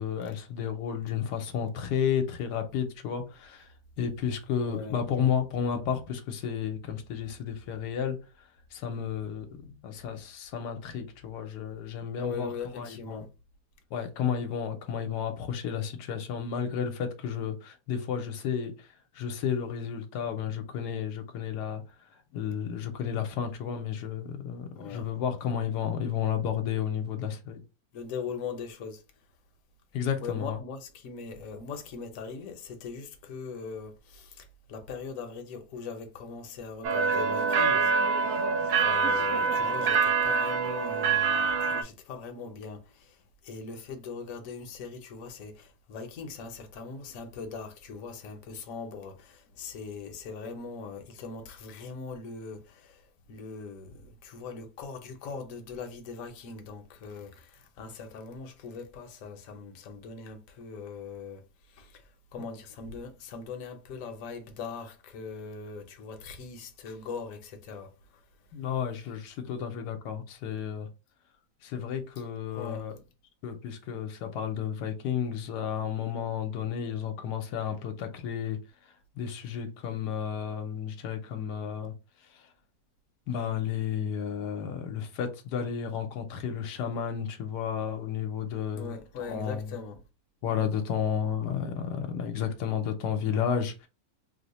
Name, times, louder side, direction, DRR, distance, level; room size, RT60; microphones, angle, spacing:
voice 1, 0.0-3.7 4.0-8.2 8.7-12.5 12.8-13.2 13.9-18.7 19.1-21.8 22.3-27.6 29.9-30.6 68.5-70.9 71.6-72.9 73.4-78.6 79.2-81.9 83.3-88.9 89.3-89.7 90.4-93.9, left 8 dB, 85° left, 1.2 m, -32 dB
voice 2, 4.6-5.0 12.2-13.3 24.7-25.1 27.9-29.0 30.2-68.3 72.5-72.9 85.6-85.7 88.7-90.0, left 5 dB, 65° left, 1.0 m, -41 dB
sound 1, 36.8-41.8, right 5 dB, 75° right, 1.0 m, -25 dB
3.0 x 2.1 x 4.0 m
omnidirectional pair, 1.7 m